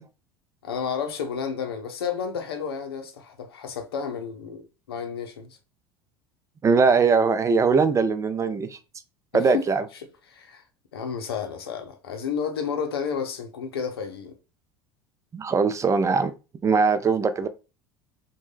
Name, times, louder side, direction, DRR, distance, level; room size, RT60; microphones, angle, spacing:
voice 1, 0.6-5.6 9.3-9.7 9.9-10.6 10.9-14.4, left 6 dB, 90° left, 0.5 m, -31 dB
voice 2, 6.6-8.8 9.3-9.8 15.3-16.3 16.6-17.5, right 5 dB, 25° right, 0.4 m, -21 dB
3.1 x 2.2 x 3.1 m
hypercardioid pair, 80°, 12 cm